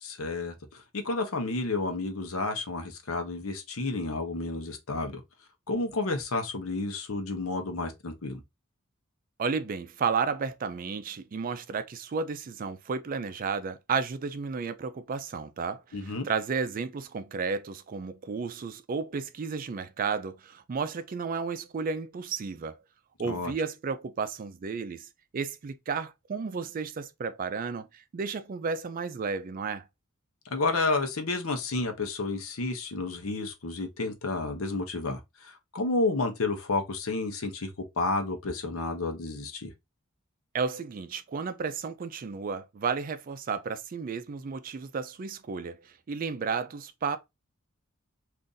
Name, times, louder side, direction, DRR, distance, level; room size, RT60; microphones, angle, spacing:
voice 1, 0.0-0.5 0.9-5.2 5.7-8.4 15.9-16.3 23.2-23.5 30.5-37.7 38.0-39.7, left 3 dB, 75° left, 0.8 m, -31 dB
voice 2, 9.4-22.8 23.2-25.1 25.3-29.8 40.5-45.8 46.1-47.2, right 5 dB, 40° right, 0.4 m, -32 dB
2.6 x 2.5 x 3.7 m
head